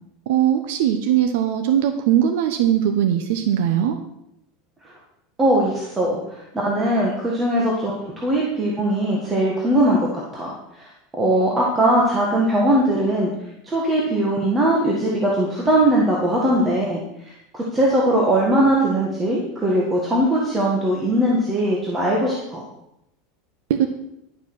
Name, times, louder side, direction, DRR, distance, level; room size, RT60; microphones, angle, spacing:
voice 1, 0.3-4.0 23.7-23.9, right 10 dB, 65° right, 7 dB, 0.9 m, -20 dB
voice 2, 5.4-7.9 8.2-13.3 13.6-17.0 17.3-22.7, right 1 dB, 10° right, -3 dB, 1.6 m, -20 dB
11.0 x 7.3 x 6.1 m, 0.82 s
supercardioid pair, 170°, 0 cm